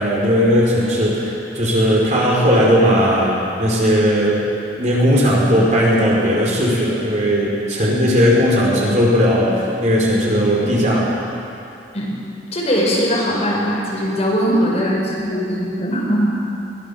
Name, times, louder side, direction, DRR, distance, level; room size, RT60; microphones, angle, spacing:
voice 1, 0.0-4.4 4.8-11.1, equal, 45° right, -4 dB, 5.1 m, -17 dB
voice 2, 12.5-16.3, equal, 40° left, -3 dB, 5.1 m, -20 dB
22.0 x 16.0 x 7.3 m, 2.7 s
head